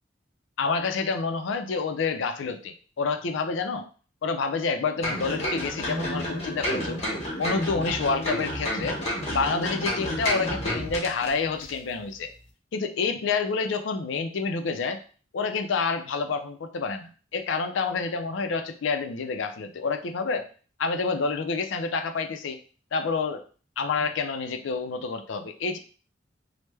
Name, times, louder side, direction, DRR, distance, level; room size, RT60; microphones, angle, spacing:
voice 1, 0.6-3.9 4.2-7.0 7.4-9.0 9.3-12.3 12.7-15.0 15.3-20.5 20.8-22.6 22.9-23.4 23.8-25.8, left 4 dB, 85° left, 7 dB, 0.4 m, -28 dB
sound 1, 5.0-11.3 11.6-11.7, left 1 dB, 35° left, 1.0 m, -30 dB
3.2 x 2.1 x 3.2 m, 0.39 s
head